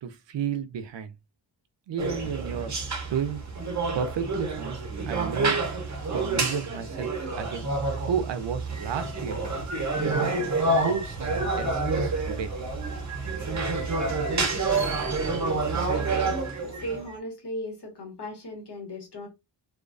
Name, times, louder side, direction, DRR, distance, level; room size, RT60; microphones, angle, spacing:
voice 1, 0.0-1.1 1.9-2.8 3.1-3.4 3.9-4.8 5.1-5.7 6.1-7.7 8.1-9.4 10.0-10.4 10.8-12.5 14.1-14.3, right 7 dB, 75° right, 0.5 m, -32 dB
sound 1, 2.0-17.1, right 3 dB, 40° right, 0.8 m, -28 dB
voice 2, 15.7-19.3, left 1 dB, 65° left, 1.1 m, -37 dB
2.3 x 2.2 x 2.4 m
wide cardioid pair, 80°, 44 cm